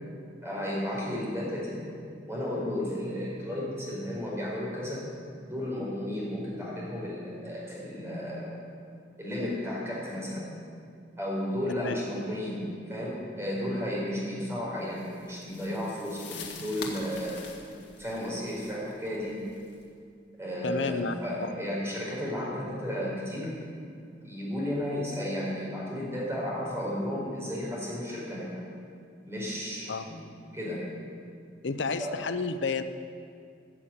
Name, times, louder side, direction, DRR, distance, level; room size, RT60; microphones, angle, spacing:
voice 1, 0.4-1.9 2.3-5.1 5.4-8.6 9.2-10.5 11.2-17.4 18.0-19.3 20.4-23.5 24.2-28.6 29.2-30.1 30.5-30.8 32.0-32.2, left 1 dB, 15° right, -5 dB, 4.5 m, -33 dB
sound 1, 14.9-19.8, left 4 dB, 70° left, 1.9 m, -44 dB
voice 2, 20.6-21.5 29.9-30.1 31.6-32.8, left 4 dB, 90° left, 10 dB, 0.7 m, -31 dB
14.5 x 7.3 x 8.4 m, 2.3 s
head